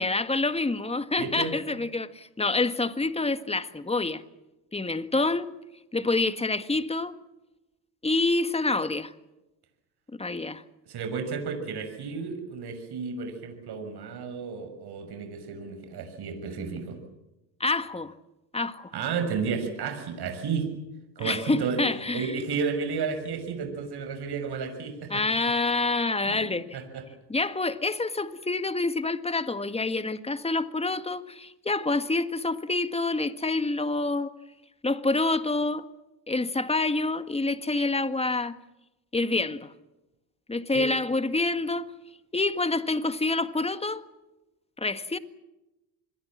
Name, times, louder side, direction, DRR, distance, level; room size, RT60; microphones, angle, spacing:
voice 1, 0.0-4.2 4.7-5.5 5.9-7.1 8.0-9.1 10.1-10.6 17.6-18.1 18.5-18.9 21.2-22.3 25.1-26.7 27.3-34.3 34.8-35.8 36.3-38.6 39.1-39.7 40.5-41.9 42.3-44.0 44.8-45.2, left 3 dB, 15° left, 1.8 m, -27 dB
voice 2, 1.2-1.5 10.8-17.0 18.9-20.7 21.2-21.8 22.1-25.2 26.2-26.4 26.7-27.0 40.7-40.8, right 5 dB, 55° right, 6.7 m, -32 dB
27.5 x 22.0 x 7.6 m
supercardioid pair, 85°, 47 cm